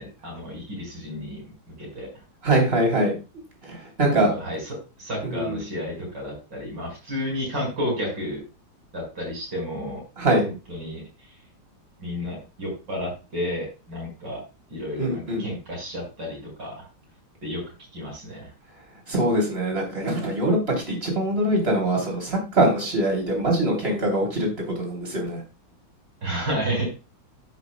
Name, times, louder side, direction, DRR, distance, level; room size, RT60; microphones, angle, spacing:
voice 1, 0.0-1.4 1.8-2.1 4.0-4.6 5.0-8.4 8.9-10.0 10.4-11.0 12.0-14.4 14.7-16.8 17.4-17.6 17.9-18.5 26.2-26.9, equal, 65° right, -1 dB, 5.9 m, -31 dB
voice 2, 2.4-3.1 3.6-4.3 5.2-5.6 10.2-10.4 15.0-15.5 19.1-24.5 24.8-25.4, right 1 dB, 30° right, 0 dB, 3.6 m, -23 dB
15.5 x 6.2 x 2.3 m, 0.30 s
omnidirectional pair, 2.1 m